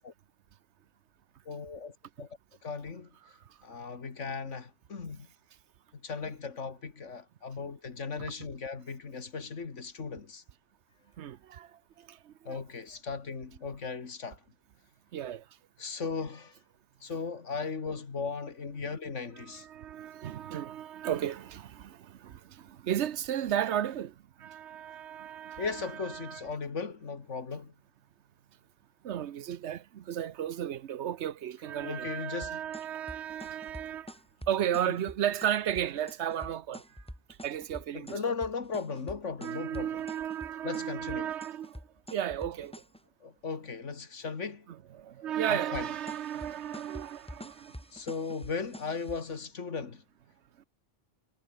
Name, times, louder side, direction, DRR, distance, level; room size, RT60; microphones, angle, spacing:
voice 1, 1.5-2.3 2.6-3.1 3.6-5.3 6.0-10.4 12.5-14.4 15.8-16.5 17.0-19.7 25.6-27.7 31.8-32.6 37.9-39.9 40.6-41.3 43.2-44.7 45.5-45.9 47.9-50.0, left 5 dB, 90° left, 2.3 m, -37 dB
voice 2, 11.2-12.6 15.1-15.5 19.4-26.4 29.0-34.1 34.5-37.0 37.4-38.2 39.4-41.8 42.1-42.8 44.7-47.8 50.6-50.7, right 10 dB, 70° right, 1.1 m, -34 dB
sound 1, 32.4-43.0 45.7-49.4, equal, 5° left, 3.0 m, -47 dB
omnidirectional pair, 1.2 m